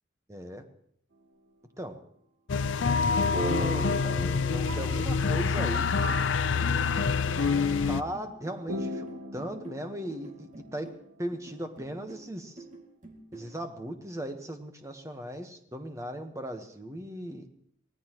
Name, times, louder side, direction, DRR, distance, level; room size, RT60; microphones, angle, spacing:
voice 1, 0.3-0.6 1.8-2.0 3.0-6.2 7.9-9.1 9.3-10.9 11.2-12.6 13.3-17.5, right 1 dB, 15° right, 6 dB, 1.2 m, -38 dB
sound 1, 2.5-8.0, left 5 dB, 80° left, 0.6 m, -26 dB
sound 2, 3.3-11.9, right 1 dB, 60° right, 1.6 m, -39 dB
sound 3, 5.3-13.6, right 2 dB, 40° right, 2.3 m, -48 dB
24.0 x 17.5 x 3.0 m, 0.69 s
head